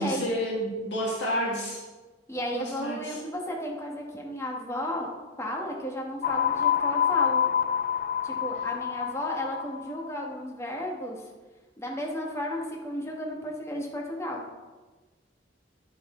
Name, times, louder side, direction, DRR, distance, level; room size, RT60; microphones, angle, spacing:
voice 1, 0.0-1.8 2.5-3.2, equal, 75° left, -4 dB, 1.7 m, -30 dB
voice 2, 2.3-5.1 5.4-7.4 8.2-11.2 11.8-14.4, left 1 dB, 15° left, -1 dB, 1.4 m, -33 dB
sound 1, 6.2-9.8, left 8 dB, 50° left, 0.3 m, -26 dB
10.0 x 4.7 x 4.3 m, 1.2 s
head